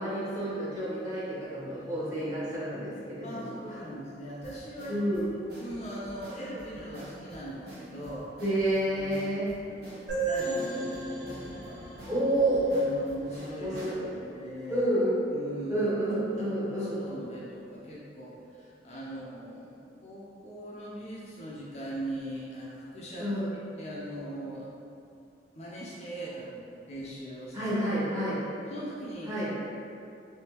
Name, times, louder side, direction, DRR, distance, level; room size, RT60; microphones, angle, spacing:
voice 1, 0.0-3.6 4.9-5.3 8.4-9.5 12.1-12.7 13.6-14.1 14.7-15.1 15.7-17.0 23.2-23.5 27.5-28.4 29.3-29.6, right 1 dB, 20° right, -10 dB, 1.1 m, -29 dB
voice 2, 3.2-8.4 8.8-9.4 9.7-11.9 12.7-13.8 14.1-14.9 15.3-15.9 16.4-23.3 23.8-24.7 25.5-27.7 28.7-29.6, right 1 dB, 35° left, -7 dB, 0.5 m, -40 dB
sound 1, 4.4-14.0, equal, 60° right, 1.0 m, -48 dB
sound 2, 10.1-13.6, right 3 dB, 85° right, 1.3 m, -35 dB
3.5 x 3.3 x 2.9 m, 2.6 s
head